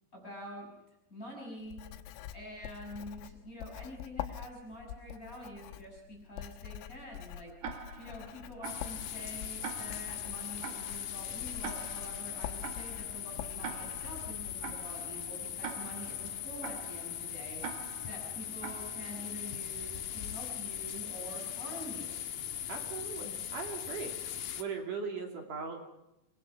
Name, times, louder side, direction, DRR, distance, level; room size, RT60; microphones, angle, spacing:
voice 1, 0.1-0.7 1.1-1.8 2.3-7.5 8.0-17.6 18.0-22.1, equal, 15° left, 0 dB, 6.6 m, -46 dB
Writing, 1.7-14.1, left 11 dB, 85° left, 3.5 m, -45 dB
Tick-tock, 7.6-19.5, right 7 dB, 65° right, 3.6 m, -46 dB
sound 1, 8.6-24.6, left 10 dB, 70° left, 2.1 m, -40 dB
voice 2, 22.7-24.2 24.6-25.8, right 5 dB, 50° right, 2 dB, 3.7 m, -39 dB
27.0 x 21.0 x 5.9 m, 0.88 s
omnidirectional pair, 5.5 m